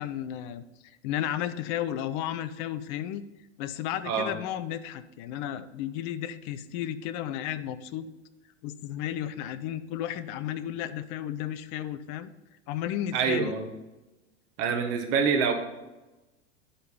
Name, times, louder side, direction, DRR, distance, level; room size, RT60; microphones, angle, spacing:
voice 1, 0.0-3.2 3.6-8.1 8.6-12.3 12.7-13.5, left 11 dB, 40° left, 13 dB, 0.6 m, -33 dB
voice 2, 13.1-13.7 14.6-15.5, right 6 dB, 45° right, 5 dB, 1.3 m, -26 dB
10.0 x 3.9 x 5.6 m, 1.1 s
figure-of-eight pair, 85°, 34 cm